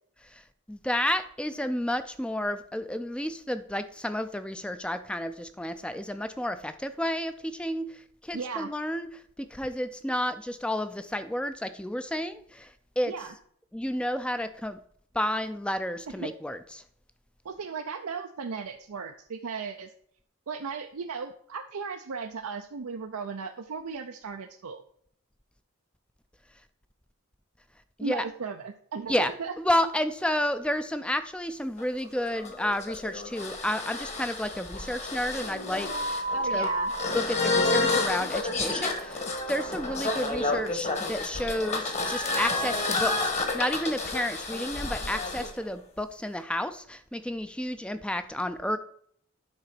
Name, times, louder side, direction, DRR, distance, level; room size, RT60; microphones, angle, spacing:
voice 1, 0.2-13.1 13.7-14.8 15.1-16.8 28.0-28.3 29.1-29.3 29.6-36.2 36.5-36.7 37.1-48.8, left 1 dB, 5° left, 11 dB, 0.4 m, -31 dB
voice 2, 8.3-8.7 13.1-13.3 16.2-16.3 17.4-19.9 20.5-24.8 28.0-29.5 36.3-36.9, right 5 dB, 85° right, 5 dB, 0.5 m, -36 dB
sound 1, 31.8-45.5, left 2 dB, 30° left, 1.2 m, -30 dB
9.7 x 3.9 x 5.9 m, 0.64 s
head